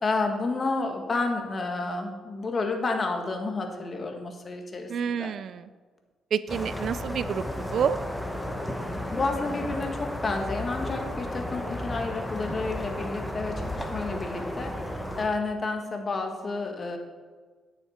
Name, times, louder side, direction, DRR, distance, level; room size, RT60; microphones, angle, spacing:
voice 1, 0.0-5.3 8.8-17.0, left 3 dB, 35° left, 4 dB, 1.7 m, -30 dB
voice 2, 4.9-5.7 6.3-8.0, right 7 dB, 60° right, 16 dB, 0.4 m, -29 dB
sound 1, 6.5-15.3, left 1 dB, 5° left, 1.2 m, -33 dB
10.0 x 9.0 x 4.4 m, 1.4 s
cardioid pair, 90°, 0 cm